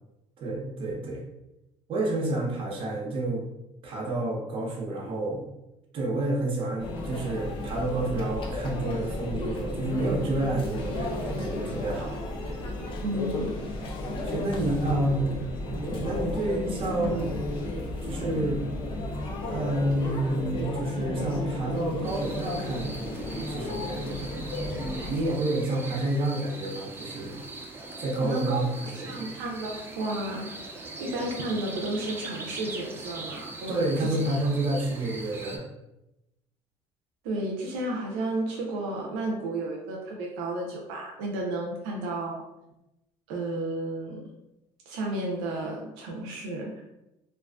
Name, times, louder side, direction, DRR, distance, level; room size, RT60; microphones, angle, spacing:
voice 1, 0.4-1.2 1.9-3.5 3.8-5.5 5.9-12.7 14.2-15.3 15.6-17.3 18.0-18.6 19.4-23.0 23.3-27.4 28.0-29.2 33.7-35.7, right 2 dB, 50° right, -1 dB, 0.7 m, -29 dB
Conversation / Chatter / Crowd, 6.8-25.2, left 1 dB, 45° left, 0.5 m, -33 dB
voice 2, 13.0-13.6 28.2-28.7 28.9-30.6 31.0-34.9 37.2-42.4 43.3-44.2 44.9-46.8, right 2 dB, 90° right, -1 dB, 0.5 m, -32 dB
sound 1, 22.0-35.6, right 2 dB, 20° right, 0.4 m, -41 dB
2.5 x 2.3 x 2.3 m, 0.91 s
cardioid pair, 110°, 12 cm